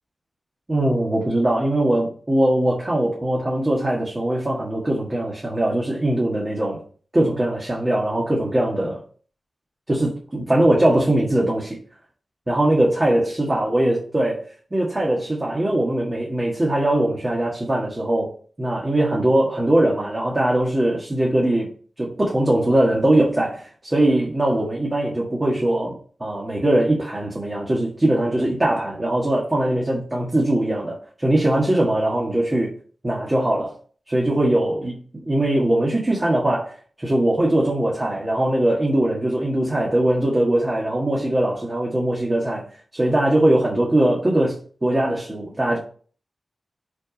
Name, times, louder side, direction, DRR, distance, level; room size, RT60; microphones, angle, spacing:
voice 1, 0.7-6.8 7.1-9.0 9.9-11.8 12.5-14.4 14.7-18.3 18.6-21.7 22.0-32.7 33.0-33.8 34.1-36.7 37.0-42.6 42.9-45.8, right 1 dB, 25° right, 1.7 m, -21 dB
6.4 x 4.7 x 5.2 m
wide cardioid pair, 115°, 0 cm